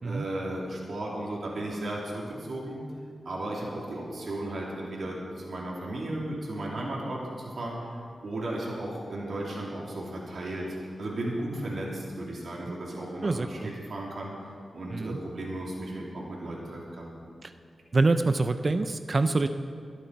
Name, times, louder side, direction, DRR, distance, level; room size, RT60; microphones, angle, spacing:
voice 1, 0.0-2.8 3.2-14.3 14.7-17.1, right 1 dB, 65° right, -4 dB, 2.9 m, -35 dB
voice 2, 13.2-13.7 14.9-15.2 17.4-17.5 17.9-19.5, right 3 dB, 45° right, 10 dB, 0.5 m, -25 dB
24.5 x 8.2 x 4.7 m, 2.2 s
wide cardioid pair, 80°, 0 cm